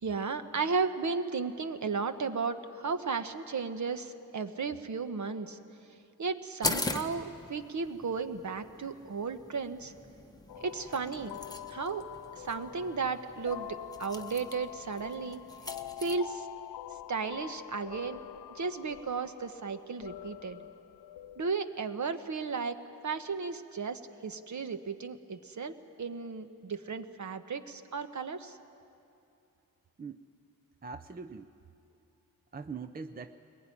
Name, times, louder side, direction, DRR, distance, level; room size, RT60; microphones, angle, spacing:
voice 1, 0.0-5.6 6.2-9.9 10.6-11.4 11.7-12.0 12.4-15.4 16.0-16.5 17.1-18.2 18.5-20.7 21.4-22.8 23.0-28.6, right 5 dB, 50° right, 9 dB, 1.1 m, -34 dB
sound 1, 6.6-16.2, left 2 dB, 10° left, 1.0 m, -41 dB
sound 2, 10.5-21.5, left 12 dB, 85° left, 0.5 m, -45 dB
voice 2, 30.0-30.3 30.8-31.5 32.5-33.4, right 5 dB, 25° right, 9 dB, 0.5 m, -42 dB
22.0 x 20.0 x 9.9 m, 2.7 s
wide cardioid pair, 135°, 38 cm